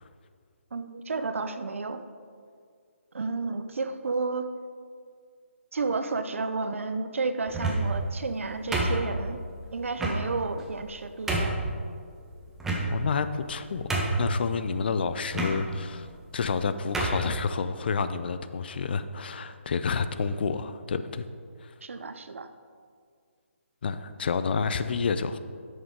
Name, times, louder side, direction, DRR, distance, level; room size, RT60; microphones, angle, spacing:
voice 1, 0.7-2.0 3.1-4.5 5.7-9.4 9.7-11.7 21.8-22.5, right 3 dB, 75° right, 9 dB, 0.7 m, -31 dB
sound 1, 7.5-8.0 8.7-9.4 10.0-10.2 10.8-10.9 11.3-11.6 12.6-13.2 13.5-13.6 13.9-14.4 15.3-15.5 16.4-16.5 16.9-17.2, right 2 dB, 5° right, 0.8 m, -27 dB
voice 2, 12.9-13.9 14.2-16.1 16.3-21.3 21.6-21.7 23.8-25.4, left 5 dB, 50° left, 11 dB, 0.5 m, -29 dB
8.9 x 6.4 x 4.7 m, 2.1 s
hypercardioid pair, 160°, 7 cm